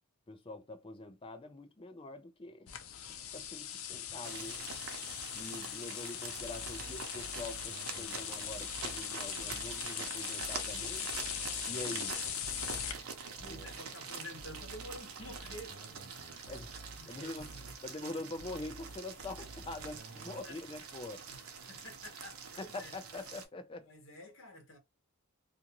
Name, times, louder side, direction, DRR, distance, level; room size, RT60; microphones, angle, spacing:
voice 1, 0.3-2.7 3.3-4.6 5.3-11.1 11.6-12.1 13.4-13.7 16.5-16.7 17.1-17.5 17.8-21.2 22.6-23.9, left 2 dB, 25° left, 0.4 m, -44 dB
sound 1, 2.7-12.9, left 9 dB, 80° left, 0.5 m, -40 dB
sound 2, 4.2-23.4, right 6 dB, 85° right, 0.7 m, -46 dB
voice 2, 5.4-5.8 12.3-12.4 12.8-13.1 13.5-16.5 17.0-17.7 20.4-20.6 21.3-22.9 23.8-24.8, left 1 dB, 60° left, 1.1 m, -51 dB
sound 3, 6.4-9.9 10.4-13.9 14.4-17.9 18.4-20.4, right 2 dB, 50° right, 0.6 m, -52 dB
2.5 x 2.5 x 2.8 m
head